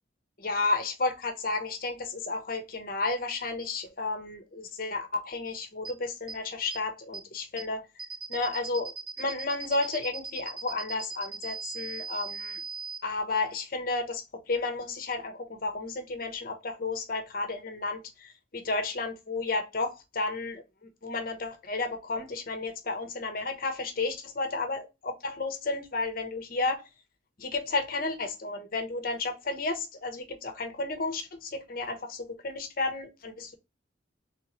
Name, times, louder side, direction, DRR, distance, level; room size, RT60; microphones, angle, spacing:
voice 1, 0.4-7.8 8.3-12.6 13.0-20.6 21.0-26.7 27.4-33.6, left 3 dB, 50° left, 0.9 m, -32 dB
sound 1, 5.8-5.9 6.3-6.4 6.7-6.8 7.1-7.2 7.6-7.7 8.0-13.0, right 5 dB, 25° right, 0.6 m, -38 dB
3.5 x 3.1 x 3.7 m
head